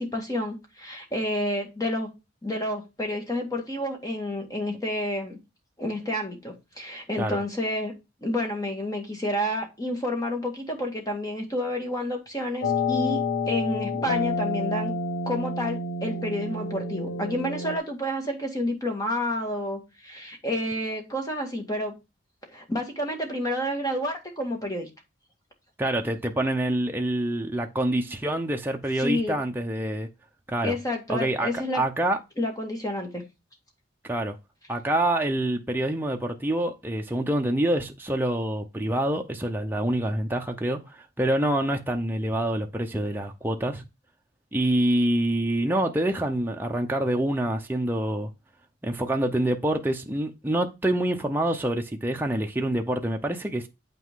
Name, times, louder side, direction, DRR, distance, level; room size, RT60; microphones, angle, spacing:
voice 1, 0.0-2.1 2.4-5.4 5.8-7.9 8.2-13.2 13.5-14.9 15.3-21.9 22.5-24.9 29.0-29.4 30.6-31.8 32.4-33.2, left 1 dB, 20° left, 1.9 m, -29 dB
sound 1, 12.6-17.8, left 3 dB, 75° left, 1.4 m, -29 dB
voice 2, 25.8-30.1 30.5-30.8 31.1-32.2 34.0-34.4 34.7-43.8 44.5-48.3 48.8-53.7, right 1 dB, 10° right, 0.7 m, -26 dB
8.2 x 6.0 x 3.7 m
head